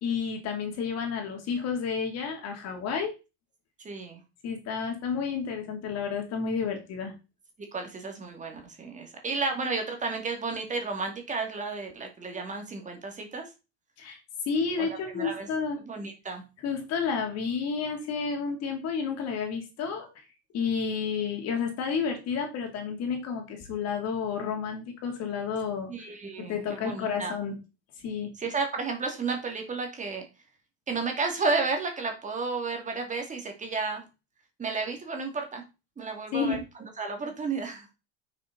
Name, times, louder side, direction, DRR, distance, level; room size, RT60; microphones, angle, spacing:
voice 1, 0.0-3.1 4.4-7.1 14.0-14.2 14.5-15.8 16.6-20.2 20.5-25.9 26.4-27.6 28.0-28.3 36.3-36.6, left 6 dB, 50° left, 3 dB, 3.0 m, -31 dB
voice 2, 3.8-4.2 7.7-13.5 14.8-14.9 15.1-15.5 15.8-16.4 25.9-27.3 28.4-30.2 30.9-34.0 34.6-35.6 36.0-37.9, right 4 dB, 20° right, 4 dB, 2.5 m, -32 dB
8.4 x 6.6 x 4.1 m, 0.28 s
supercardioid pair, 125°, 33 cm